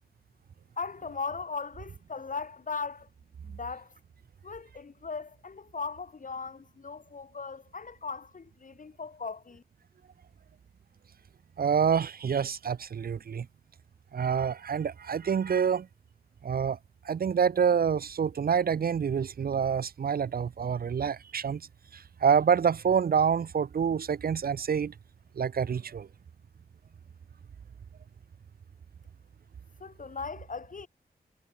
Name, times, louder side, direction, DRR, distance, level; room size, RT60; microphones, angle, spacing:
voice 1, 0.8-3.1 3.4-3.9 4.4-9.6 29.8-30.9, left 4 dB, 55° left, 2.2 m, -38 dB
voice 2, 11.6-13.5 14.1-15.9 16.4-16.8 17.0-21.6 21.9-24.9 25.4-26.1, right 7 dB, 65° right, 0.7 m, -27 dB
wide cardioid pair, 85°, 16 cm